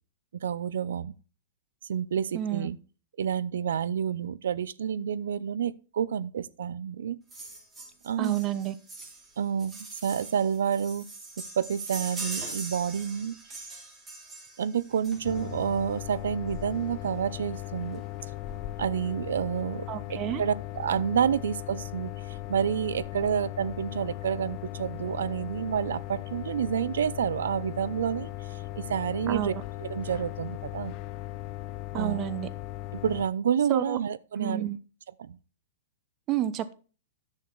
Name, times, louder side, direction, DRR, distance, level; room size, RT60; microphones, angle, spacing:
voice 1, 0.3-1.1 1.9-2.8 3.2-7.2 8.0-8.4 9.4-11.1 11.4-13.4 14.6-18.0 18.8-28.3 28.8-29.5 29.8-30.9 31.9-32.2 32.9-34.7 35.2-35.4, right 8 dB, 80° right, 0.6 m, -29 dB
voice 2, 2.3-2.7 8.2-8.7 19.9-20.4 29.3-29.6 31.9-32.5 33.7-34.0 34.4-34.8 36.3-36.7, right 12 dB, 35° right, 0.9 m, -30 dB
sound 1, 7.3-15.6 16.7-16.8 17.1-17.2 17.5-17.6 18.0-18.6 19.0-19.1, right 3 dB, 15° right, 3.6 m, -42 dB
sound 2, 15.2-33.3, left 15 dB, 40° left, 0.8 m, -38 dB
10.5 x 6.5 x 4.0 m
hypercardioid pair, 135°, 0 cm